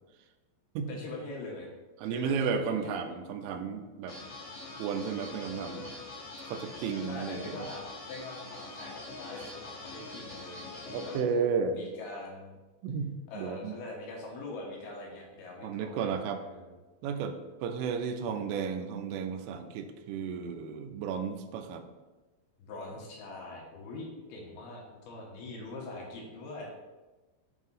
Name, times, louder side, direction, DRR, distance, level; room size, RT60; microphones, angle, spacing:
voice 1, 0.9-1.7 2.1-3.0 7.1-11.1 11.7-12.6 13.3-16.1 16.4-16.7 22.7-26.7, left 2 dB, 75° left, -2 dB, 2.7 m, -43 dB
voice 2, 2.0-4.2 4.8-5.9 6.4-7.6 10.9-11.8 12.8-13.8 15.6-16.4 17.0-21.9, right 6 dB, 85° right, 7 dB, 2.9 m, -33 dB
sound 1, 4.1-11.2, left 2 dB, 55° left, 2.7 m, -43 dB
8.1 x 2.7 x 5.4 m, 1.2 s
omnidirectional pair, 5.1 m